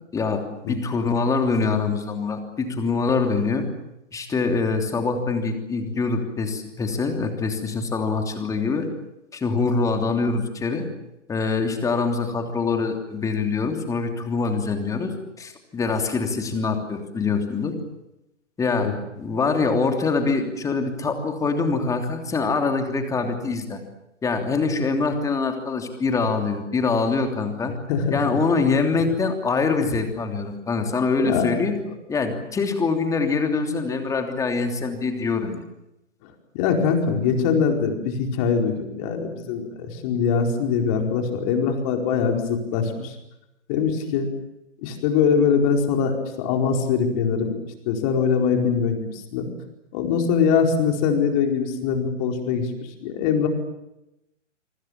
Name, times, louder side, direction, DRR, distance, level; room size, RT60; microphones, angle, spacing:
voice 1, 0.1-3.6 4.1-8.9 9.3-10.9 11.3-17.7 18.6-18.9 19.2-23.8 24.2-27.7 28.1-31.7 32.1-35.6 43.0-43.1, left 4 dB, 10° left, 5 dB, 3.1 m, -24 dB
voice 2, 27.9-28.4 31.2-31.5 36.5-43.1 43.7-44.3 44.8-47.6 47.9-49.5 49.9-52.7 53.0-53.5, left 6 dB, 30° left, 3 dB, 4.6 m, -22 dB
26.5 x 24.5 x 7.3 m, 0.88 s
figure-of-eight pair, 125°, 37 cm